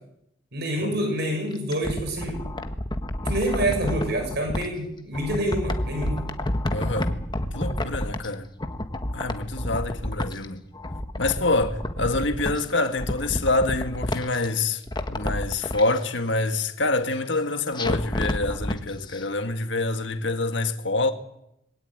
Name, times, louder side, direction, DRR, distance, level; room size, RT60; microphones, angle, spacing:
voice 1, 0.5-2.4 3.2-6.2, right 1 dB, 60° right, 7.0 m, -27 dB
sound 1, 1.5-4.7 5.1-8.3 8.6-10.5 10.8-12.6 13.0-14.5 14.8-15.8 17.7-18.8 19.1-19.2, left 1 dB, 25° left, 1.5 m, -29 dB
voice 2, 6.7-7.2 7.5-8.5 9.1-10.6 11.2-21.1, left 2 dB, 65° left, 1.8 m, -26 dB
21.5 x 17.0 x 9.4 m
head